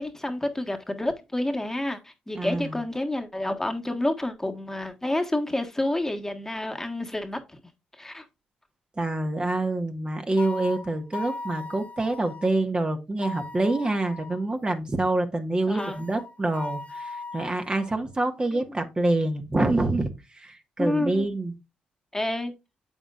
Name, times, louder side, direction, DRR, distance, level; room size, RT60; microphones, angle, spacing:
voice 1, 0.0-7.6 8.0-8.2 15.7-16.0 18.5-18.6 20.8-21.3 22.1-22.5, left 1 dB, 10° left, 1.5 m, -29 dB
voice 2, 2.3-2.8 9.0-21.5, right 2 dB, 30° right, 1.6 m, -26 dB
sound 1, 10.4-12.5 13.2-14.5 15.8-18.0, left 2 dB, 45° left, 1.0 m, -38 dB
8.0 x 7.1 x 2.5 m
supercardioid pair, 50°, 3 cm